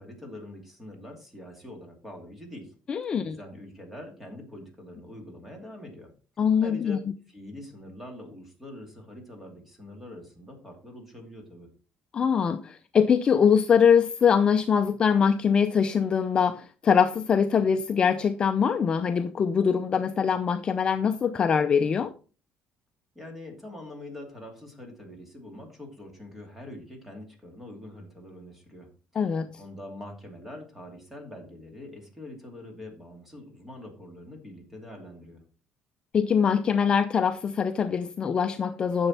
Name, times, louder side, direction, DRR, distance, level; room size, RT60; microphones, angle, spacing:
voice 1, 0.0-2.7 3.2-6.1 6.6-11.7 23.1-28.9 29.6-35.4, left 1 dB, 5° right, 2.6 m, -44 dB
voice 2, 2.9-3.4 6.4-7.0 12.1-22.1 29.2-29.5 36.1-39.1, left 7 dB, 30° left, 0.5 m, -23 dB
10.0 x 7.0 x 4.3 m
cardioid pair, 170°, 3 cm